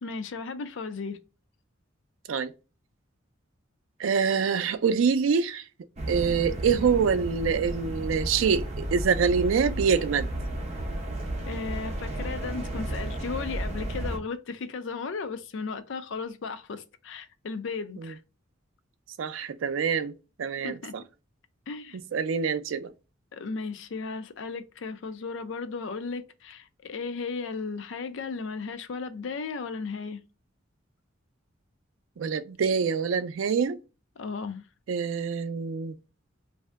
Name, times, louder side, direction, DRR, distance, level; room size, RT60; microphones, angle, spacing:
voice 1, 0.0-1.2 11.5-18.2 20.6-21.0 21.7-22.0 23.3-30.2 34.2-34.6, left 4 dB, 70° left, 0.4 m, -35 dB
voice 2, 4.0-5.6 6.1-10.3 18.0-18.1 19.2-20.1 20.4-21.0 21.9-22.9 32.2-33.8 34.9-36.0, right 6 dB, 90° right, 0.4 m, -25 dB
sound 1, 6.0-14.2, right 1 dB, 35° right, 0.6 m, -33 dB
2.7 x 2.1 x 3.4 m
head